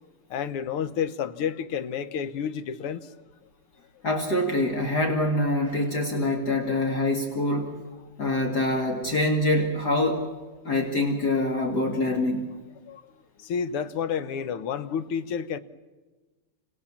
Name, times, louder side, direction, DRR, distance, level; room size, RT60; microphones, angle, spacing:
voice 1, 0.3-3.1 12.9-13.1 13.4-15.6, left 7 dB, 85° left, 2.0 m, -30 dB
voice 2, 4.0-7.8 8.2-10.3 10.6-12.5, left 1 dB, 50° left, 2.7 m, -25 dB
28.5 x 27.5 x 7.3 m
omnidirectional pair, 2.4 m